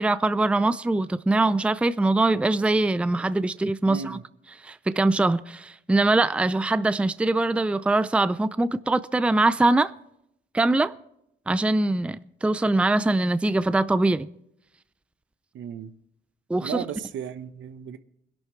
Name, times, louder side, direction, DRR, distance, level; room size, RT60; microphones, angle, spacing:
voice 1, 0.0-4.2 4.6-9.9 10.5-10.9 11.5-14.3 16.5-16.8, right 2 dB, 5° right, 0.4 m, -22 dB
voice 2, 3.8-4.2 15.5-15.9 16.6-18.0, right 8 dB, 70° right, 1.0 m, -35 dB
20.5 x 11.5 x 3.1 m
cardioid pair, 90°, 20 cm